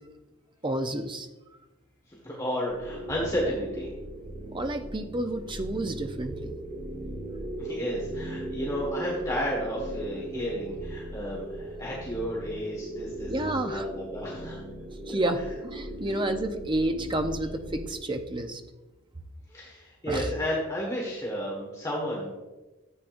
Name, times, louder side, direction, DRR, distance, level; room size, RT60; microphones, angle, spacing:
voice 1, 0.6-1.3 4.5-6.5 13.3-13.8 15.1-18.6 20.1-20.3, right 1 dB, 25° right, 6 dB, 0.7 m, -30 dB
voice 2, 2.1-3.9 7.6-14.6 19.5-22.3, equal, 15° left, -4 dB, 1.7 m, -32 dB
sound 1, 2.7-17.9, right 1 dB, 50° right, 3.0 m, -38 dB
13.5 x 8.5 x 2.6 m, 1.1 s
head